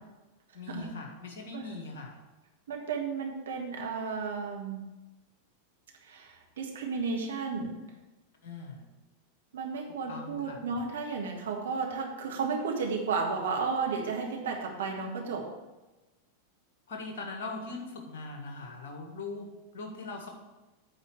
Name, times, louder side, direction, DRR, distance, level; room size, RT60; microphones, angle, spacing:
voice 1, 0.5-2.2 8.4-8.8 10.1-10.6 16.9-20.3, left 3 dB, 55° left, 3 dB, 1.7 m, -41 dB
voice 2, 2.7-4.8 6.0-7.7 9.5-15.5, right 5 dB, 65° right, 1 dB, 1.6 m, -33 dB
8.9 x 4.2 x 7.0 m, 1.1 s
figure-of-eight pair, 90°, 0 cm